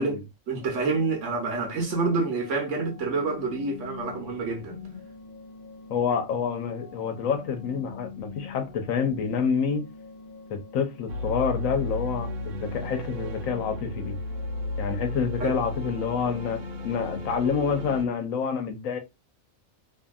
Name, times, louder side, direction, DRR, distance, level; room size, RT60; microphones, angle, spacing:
voice 1, 0.0-4.8 15.4-15.6, right 3 dB, 65° right, 1.1 m, -28 dB
sound 1, 0.6-18.1, left 6 dB, 60° left, 0.4 m, -44 dB
voice 2, 5.9-9.9 10.5-14.2 14.8-16.6 16.8-19.0, left 6 dB, 80° left, 1.1 m, -28 dB
sound 2, 11.1-18.0, left 2 dB, 90° right, 1.2 m, -34 dB
2.7 x 2.7 x 2.3 m
omnidirectional pair, 1.4 m